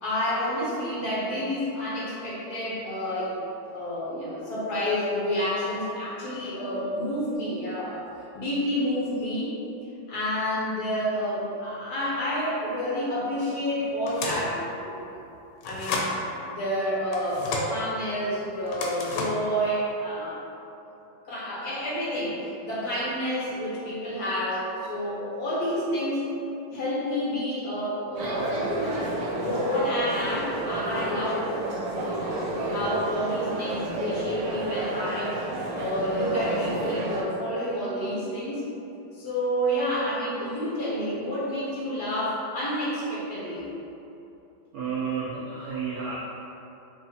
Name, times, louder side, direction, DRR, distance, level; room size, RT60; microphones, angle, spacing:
voice 1, 0.0-3.4 3.7-8.0 8.3-9.6 10.1-14.9 15.6-20.4 21.2-26.3 26.7-29.0 29.4-31.4 32.5-35.4 35.8-38.6 39.1-43.7, equal, 60° left, -7 dB, 1.2 m, -29 dB
sound 1, 14.1-14.6 15.6-16.2 17.1-17.7 18.7-19.5, left 3 dB, 85° left, 1.3 m, -31 dB
sound 2, 28.2-37.2, right 1 dB, 70° right, 1.2 m, -30 dB
voice 2, 44.7-46.2, right 5 dB, 85° right, -6 dB, 0.7 m, -31 dB
4.6 x 3.0 x 2.7 m, 2.8 s
omnidirectional pair, 2.1 m